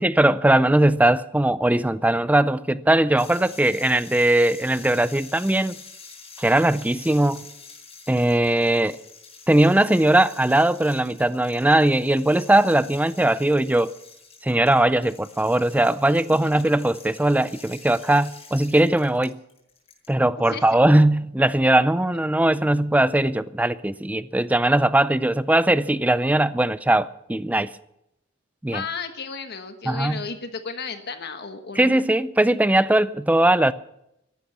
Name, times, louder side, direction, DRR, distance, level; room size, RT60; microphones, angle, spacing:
voice 1, 0.0-5.8 6.4-7.5 8.1-9.0 9.5-13.9 14.4-19.4 20.1-27.7 28.6-28.8 29.9-30.2 31.8-33.7, right 1 dB, 10° right, 0.4 m, -20 dB
sound 1, 3.2-20.1, left 5 dB, 30° left, 5.6 m, -46 dB
voice 2, 16.3-16.6 20.5-20.6 28.7-31.9, left 5 dB, 55° left, 1.3 m, -34 dB
14.5 x 11.5 x 7.2 m
head